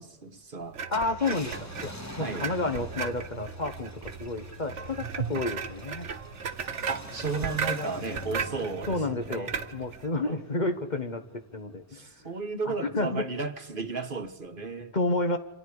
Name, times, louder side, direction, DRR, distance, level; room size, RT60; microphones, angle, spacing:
voice 1, 0.0-0.8 2.2-2.5 6.9-9.0 9.3-9.5 10.2-10.4 11.9-14.9, right 4 dB, 50° right, 7 dB, 1.4 m, -34 dB
sound 1, 0.7-10.1, right 6 dB, 85° right, 1.4 m, -36 dB
Car, 0.8-11.6 12.1-12.2 14.2-14.5, equal, 15° left, 2.0 m, -45 dB
voice 2, 0.9-1.5 1.8-6.1 7.7-7.9 8.9-12.1 12.6-13.3 14.9-15.4, left 2 dB, 40° left, 7 dB, 1.5 m, -30 dB
28.5 x 26.0 x 4.9 m, 1.1 s
omnidirectional pair, 1.2 m